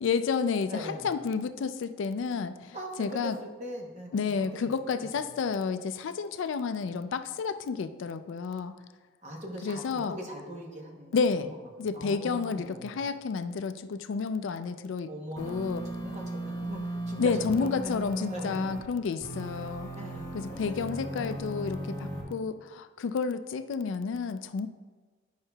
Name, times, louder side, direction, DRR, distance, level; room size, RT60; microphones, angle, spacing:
voice 1, 0.0-3.3 4.1-8.7 9.6-10.1 11.1-11.5 11.8-15.1 15.4-15.8 17.2-19.9 20.3-24.7, left 5 dB, 70° left, 11 dB, 0.3 m, -30 dB
voice 2, 0.7-1.1 2.7-4.3 4.6-4.7 5.0-5.1 8.5-8.7 9.2-13.0 15.1-18.0 18.3-18.7 19.9-22.5, equal, 35° right, 1 dB, 0.8 m, -42 dB
sound 1, 15.4-18.8 19.2-22.2, right 1 dB, 15° left, 1.4 m, -37 dB
8.7 x 5.6 x 2.3 m, 1.4 s
head